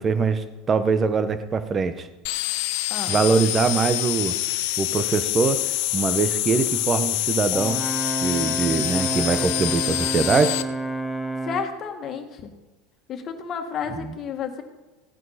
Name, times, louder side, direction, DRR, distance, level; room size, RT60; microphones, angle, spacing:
voice 1, 0.0-2.1 3.1-4.4 4.8-7.8 8.2-10.6 13.9-14.1, right 5 dB, 30° right, 11 dB, 1.2 m, -23 dB
sound 1, 2.2-10.6, left 17 dB, 65° left, 0.7 m, -26 dB
voice 2, 2.9-3.2 11.4-12.5 13.1-14.6, left 6 dB, 40° left, 5 dB, 1.9 m, -31 dB
Brass instrument, 7.5-11.7, right 2 dB, ahead, 1.0 m, -29 dB
16.5 x 9.1 x 4.3 m, 1.2 s
hypercardioid pair, 90°, 0 cm